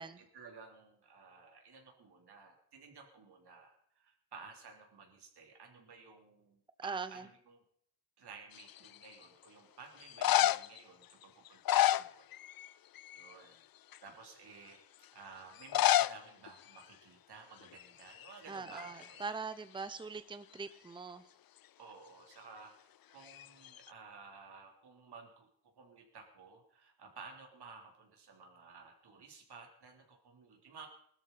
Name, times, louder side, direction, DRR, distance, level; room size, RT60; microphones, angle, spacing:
voice 1, 0.2-7.6 8.2-12.3 13.1-13.6 14.0-14.8 15.1-19.3 21.8-25.5 25.8-30.9, right 4 dB, 85° right, 2 dB, 3.7 m, -54 dB
voice 2, 6.8-7.3 18.5-21.3, right 4 dB, 15° right, 12 dB, 0.7 m, -42 dB
sound 1, 8.5-9.0 10.0-10.8 11.4-12.7 12.9-13.3 13.9-14.0 15.6-16.2 16.5-16.6 16.7-16.8 17.6-17.8 18.1-19.3 23.3-23.9, left 13 dB, 65° left, 0.5 m, -30 dB
20.5 x 13.0 x 4.2 m, 0.67 s
wide cardioid pair, 110°, 38 cm